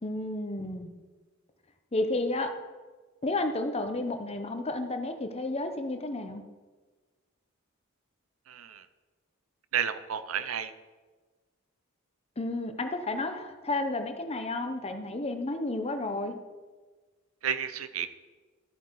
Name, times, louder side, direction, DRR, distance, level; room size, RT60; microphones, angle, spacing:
voice 1, 0.0-0.9 1.9-2.5 3.2-6.4 12.4-16.3, left 2 dB, 30° left, 7 dB, 0.9 m, -31 dB
voice 2, 8.5-8.9 9.7-10.7 17.4-18.1, right 8 dB, 90° right, 12 dB, 0.7 m, -31 dB
13.0 x 7.9 x 4.8 m, 1.3 s
head